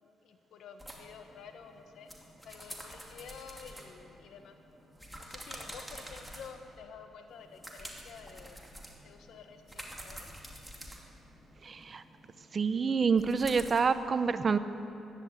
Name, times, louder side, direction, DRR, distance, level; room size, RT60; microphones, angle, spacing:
voice 1, 0.0-2.1 2.4-4.6 5.2-8.6 9.0-10.3, left 6 dB, 75° left, 6 dB, 1.4 m, -50 dB
sound 1, 0.8-6.8 7.3-13.8, equal, ahead, 2.6 m, -48 dB
voice 2, 11.6-12.0 12.5-14.6, right 5 dB, 45° right, 12 dB, 0.7 m, -27 dB
15.0 x 11.5 x 8.1 m, 2.8 s
supercardioid pair, 70°, 0 cm